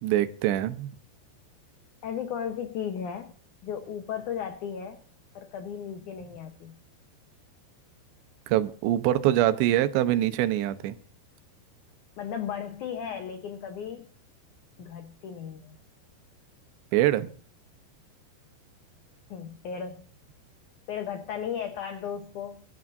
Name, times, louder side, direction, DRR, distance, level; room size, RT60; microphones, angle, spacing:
voice 1, 0.0-0.9 8.5-11.0 16.9-17.3, right 13 dB, 85° right, 11 dB, 3.1 m, -24 dB
voice 2, 2.0-3.3 3.6-5.0 5.4-6.8 12.2-14.1 14.8-15.8 19.3-20.1 20.9-22.6, left 8 dB, 80° left, 7 dB, 1.7 m, -35 dB
24.5 x 12.0 x 2.6 m, 0.39 s
omnidirectional pair, 5.0 m